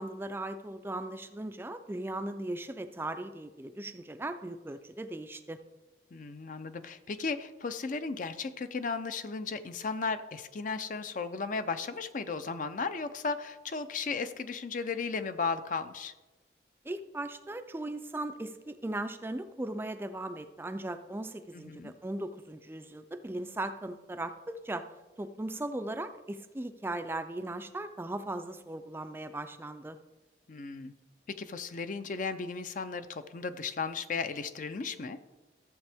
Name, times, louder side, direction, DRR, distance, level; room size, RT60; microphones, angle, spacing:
voice 1, 0.0-5.6 16.8-24.8 25.2-30.0, right 1 dB, 15° right, 9 dB, 0.4 m, -38 dB
voice 2, 6.1-16.1 21.5-21.9 30.5-30.9 31.4-35.2, left 4 dB, 45° left, 11 dB, 0.5 m, -35 dB
14.0 x 7.4 x 3.5 m, 1.1 s
head